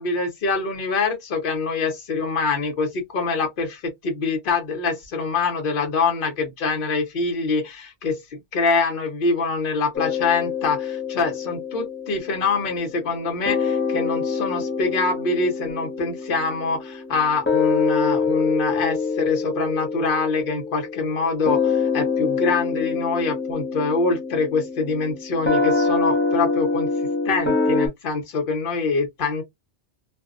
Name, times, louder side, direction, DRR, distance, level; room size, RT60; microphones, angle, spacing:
voice 1, 0.0-26.9 27.2-29.4, left 4 dB, 55° left, 1.0 m, -25 dB
sound 1, 9.9-13.2 13.5-27.9, left 4 dB, 15° left, 0.5 m, -25 dB
2.6 x 2.2 x 2.4 m
omnidirectional pair, 1.1 m